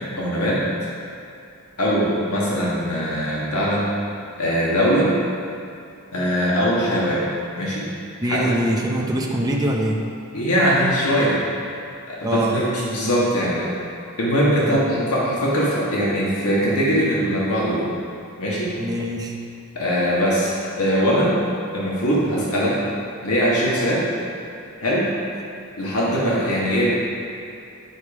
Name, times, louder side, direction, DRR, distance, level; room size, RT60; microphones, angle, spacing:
voice 1, 0.2-0.6 1.8-3.9 4.4-5.1 6.1-7.9 8.2-8.5 10.3-11.8 12.1-13.7 14.2-17.8 18.4-18.7 19.7-21.4 21.7-22.8 23.2-24.1 24.8-25.1 25.8-26.9, equal, 90° left, -6 dB, 1.6 m, -21 dB
voice 2, 8.2-10.0 12.2-12.6 14.6-14.8 18.8-19.3, right 1 dB, 15° right, -2 dB, 0.7 m, -23 dB
9.7 x 5.2 x 4.9 m, 2.5 s
head